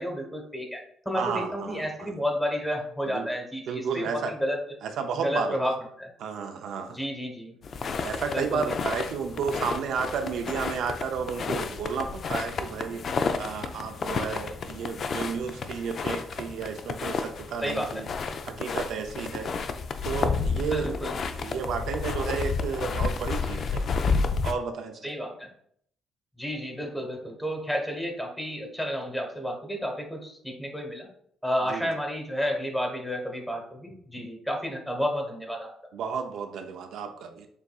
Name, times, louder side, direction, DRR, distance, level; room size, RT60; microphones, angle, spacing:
voice 1, 0.0-4.6 5.2-5.7 6.0-6.1 6.9-7.5 8.3-8.7 17.6-18.1 20.6-21.2 25.0-25.5 26.4-31.1 31.4-35.7, equal, 5° left, 1 dB, 1.1 m, -31 dB
voice 2, 1.1-2.1 3.1-3.3 3.7-4.3 4.8-5.6 6.2-7.0 8.0-13.0 13.4-18.1 18.4-19.5 20.0-20.9 21.4-25.0 31.7-31.9 35.9-37.5, right 6 dB, 75° right, 5 dB, 0.4 m, -32 dB
sound 1, 7.6-24.5, left 5 dB, 55° left, 0.4 m, -31 dB
6.9 x 2.6 x 2.3 m, 0.66 s
cardioid pair, 90°, 0 cm